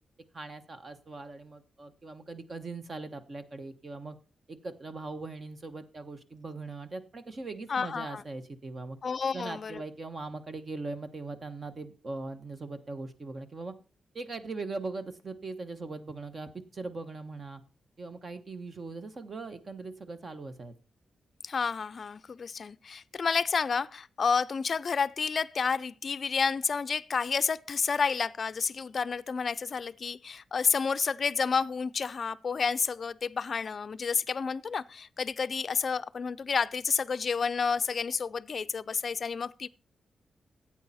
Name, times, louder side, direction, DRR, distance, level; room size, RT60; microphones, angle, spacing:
voice 1, 0.3-4.2 4.5-9.0 9.3-13.7 14.1-17.6 18.0-20.7, right 3 dB, 35° right, 1.2 m, -40 dB
voice 2, 7.7-8.2 9.0-9.8 21.4-39.7, left 5 dB, 40° left, 0.4 m, -30 dB
14.5 x 8.7 x 4.2 m
wide cardioid pair, 150°, 0 cm